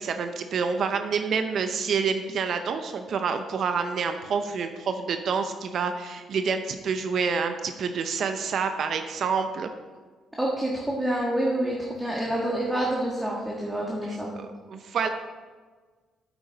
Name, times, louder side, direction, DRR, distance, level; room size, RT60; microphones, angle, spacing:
voice 1, 0.0-9.7 14.1-15.1, right 5 dB, 60° right, 7 dB, 0.6 m, -28 dB
voice 2, 10.4-14.3, right 1 dB, 5° right, -3 dB, 1.6 m, -27 dB
8.9 x 8.0 x 4.0 m, 1.4 s
cardioid pair, 90°, 0 cm